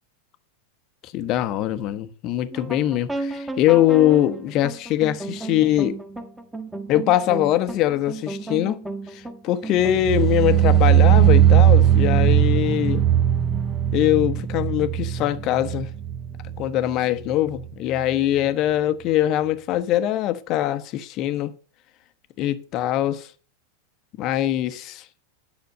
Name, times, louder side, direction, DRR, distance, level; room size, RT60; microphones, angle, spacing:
voice 1, 1.1-6.0 6.9-8.8 9.1-13.0 13.9-15.9 16.6-21.5 22.4-23.3 24.2-25.0, left 13 dB, 40° left, 0.9 m, -22 dB
Probably a rip off, 2.5-9.9, right 2 dB, 5° right, 1.4 m, -34 dB
sound 1, 9.8-16.9 17.2-17.6 18.0-18.1, right 11 dB, 25° right, 0.7 m, -18 dB
10.0 x 6.2 x 6.5 m
figure-of-eight pair, 90°, 0 cm